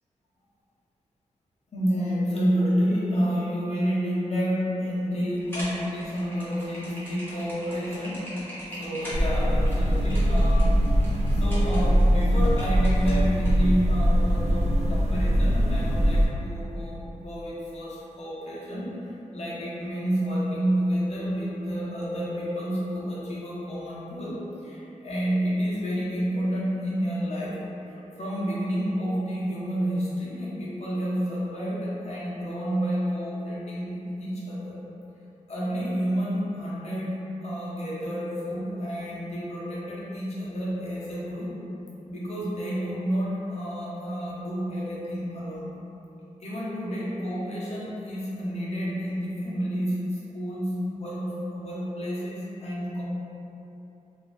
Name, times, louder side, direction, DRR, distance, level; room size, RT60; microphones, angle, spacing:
voice 1, 1.7-8.2 8.8-18.9 19.3-27.6 28.2-34.8 35.5-41.5 42.1-45.7 46.4-53.0, equal, 55° left, -8 dB, 0.8 m, -29 dB
sound 1, 5.4-13.5, equal, 15° left, 0.9 m, -41 dB
sound 2, 9.1-16.3, equal, 55° right, 0.4 m, -22 dB
3.1 x 2.6 x 2.6 m, 3.0 s
wide cardioid pair, 155°, 13 cm